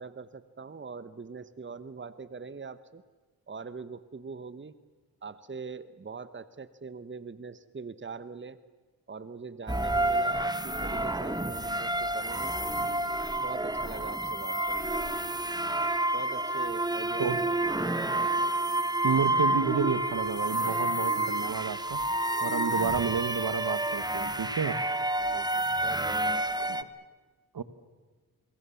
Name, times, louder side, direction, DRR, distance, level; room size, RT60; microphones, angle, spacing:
voice 1, 0.0-3.0 3.5-4.7 5.2-8.6 9.1-12.5 13.3-15.0 16.1-17.6 25.2-26.6, right 4 dB, 30° right, 14 dB, 1.2 m, -42 dB
sound 1, 9.7-26.8, right 1 dB, 10° right, 1.3 m, -29 dB
voice 2, 19.0-22.0 22.4-24.8 26.6-26.9 27.5-27.6, right 6 dB, 65° right, 13 dB, 1.5 m, -30 dB
26.5 x 22.0 x 7.1 m, 1.3 s
cardioid pair, 50°, 38 cm